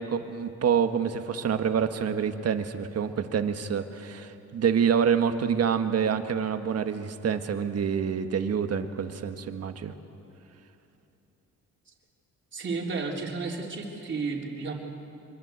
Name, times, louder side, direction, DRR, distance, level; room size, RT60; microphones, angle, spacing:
voice 1, 0.0-9.9, right 7 dB, 55° right, 8 dB, 1.6 m, -27 dB
voice 2, 12.5-14.7, right 4 dB, 40° right, 0 dB, 3.8 m, -32 dB
25.0 x 22.0 x 8.1 m, 2.8 s
cardioid pair, 90°, 30 cm